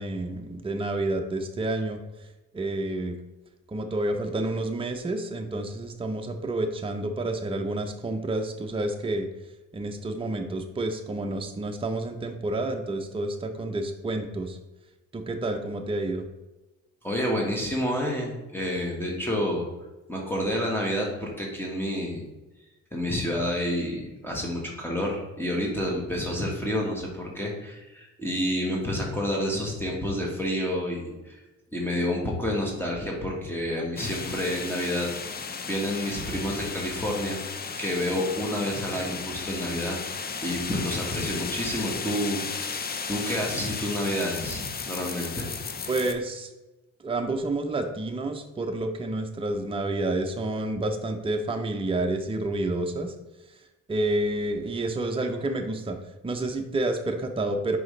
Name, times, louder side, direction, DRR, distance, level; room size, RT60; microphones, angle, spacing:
voice 1, 0.0-2.0 2.5-3.2 3.7-9.3 9.7-14.6 15.1-16.2 45.9-46.5 47.0-53.1 53.9-56.0 56.2-57.8, right 2 dB, 20° right, 4 dB, 0.7 m, -29 dB
voice 2, 17.0-19.7 20.1-22.2 22.9-31.4 31.7-35.1 35.6-37.4 37.8-42.7 43.1-45.5, left 1 dB, 5° left, -2 dB, 1.5 m, -29 dB
sound 1, 34.0-46.1, left 5 dB, 30° left, 0.6 m, -35 dB
6.1 x 4.9 x 3.2 m, 1.1 s
cardioid pair, 90°, 30 cm